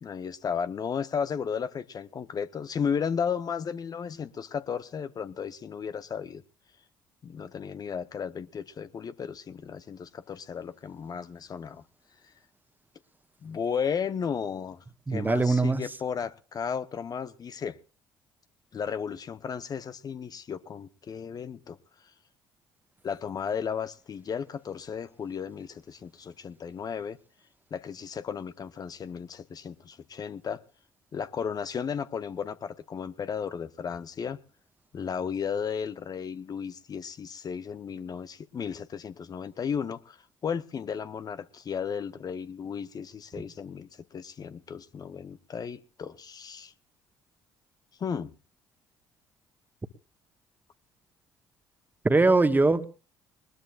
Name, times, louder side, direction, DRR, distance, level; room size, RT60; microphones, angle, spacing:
voice 1, 0.0-6.4 7.2-11.8 13.4-17.8 18.7-21.8 23.0-27.2 27.7-30.6 31.1-34.4 34.9-40.2 40.4-46.7 48.0-48.3, left 7 dB, 40° left, 13 dB, 0.9 m, -34 dB
voice 2, 15.1-15.8 52.0-52.9, right 3 dB, 20° right, 11 dB, 1.5 m, -21 dB
21.0 x 20.5 x 2.4 m, 0.36 s
figure-of-eight pair, 50°, 10 cm